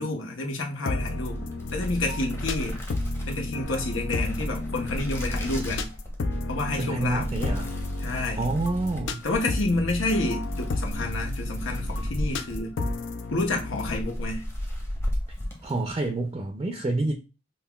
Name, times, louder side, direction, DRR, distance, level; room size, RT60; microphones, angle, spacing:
voice 1, 0.0-1.4 1.7-2.8 3.3-5.9 6.5-7.3 8.0-8.4 9.2-12.8 13.3-14.4, left 2 dB, 90° left, 0.9 m, -29 dB
sound 1, 0.8-14.0, left 2 dB, 65° left, 0.4 m, -31 dB
Book Pages Flip Dry, 1.2-16.2, equal, 15° left, 0.8 m, -36 dB
voice 2, 6.8-7.8 8.3-9.3 15.6-17.1, right 2 dB, 25° right, 0.4 m, -28 dB
5.5 x 2.2 x 2.2 m
head